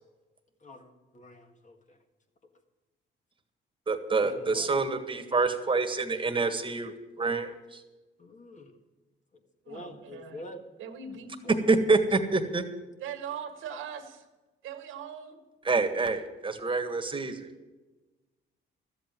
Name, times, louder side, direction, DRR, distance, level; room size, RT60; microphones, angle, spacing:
voice 1, 0.6-2.0 4.2-4.7 8.2-8.7 9.7-10.6 11.4-11.7, left 1 dB, 40° left, 6 dB, 1.8 m, -45 dB
voice 2, 3.9-7.8 11.7-12.6 15.6-17.5, right 3 dB, 25° right, 7 dB, 1.6 m, -27 dB
voice 3, 9.6-10.4 10.8-11.4 13.0-14.2 14.6-15.4, right 7 dB, 85° right, 7 dB, 1.7 m, -40 dB
13.0 x 7.9 x 9.2 m, 1.2 s
cardioid pair, 90°, 20 cm